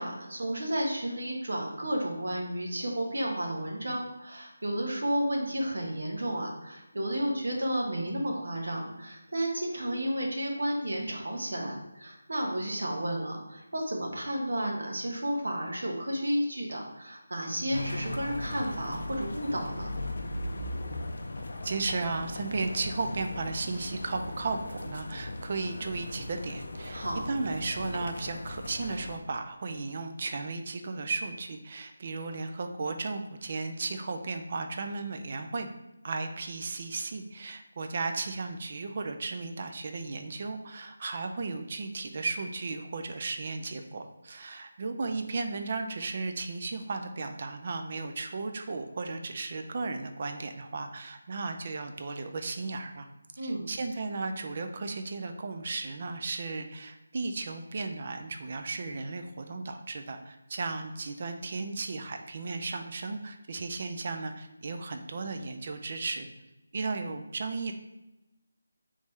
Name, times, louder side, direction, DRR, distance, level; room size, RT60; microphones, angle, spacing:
voice 1, 0.0-19.9 26.9-27.2 53.4-53.7, right 1 dB, 70° right, 0 dB, 1.1 m, -32 dB
sound 1, 17.7-29.2, left 1 dB, 55° left, 0.5 m, -38 dB
voice 2, 21.6-35.7 36.0-53.1 53.3-66.3 66.7-67.7, right 3 dB, 30° right, 6 dB, 0.3 m, -35 dB
3.6 x 3.1 x 4.0 m, 0.99 s
figure-of-eight pair, 180°, 0 cm